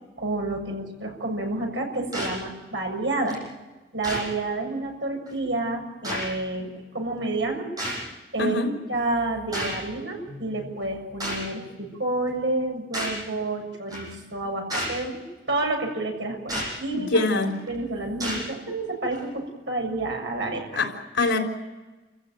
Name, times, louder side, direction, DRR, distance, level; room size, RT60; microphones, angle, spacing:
voice 1, 0.2-3.4 3.9-7.7 8.3-8.6 8.9-15.2 15.5-17.3 17.7-20.8, right 2 dB, 75° right, 7.1 m, -29 dB
sound 1, 2.1-2.4 3.3-3.4 4.0-4.3 5.3-5.4 6.0-6.3 7.8-8.0 9.5-9.8 11.2-11.5 12.9-13.2 13.9-14.1 14.7-15.0 16.5-16.7 17.4-17.7 18.2-18.4 19.1-19.2, equal, 20° right, 7.5 m, -30 dB
voice 2, 8.4-8.7 10.3-10.4 16.9-17.6 20.8-21.4, left 2 dB, 85° left, 4.2 m, -24 dB
29.5 x 15.5 x 9.3 m
head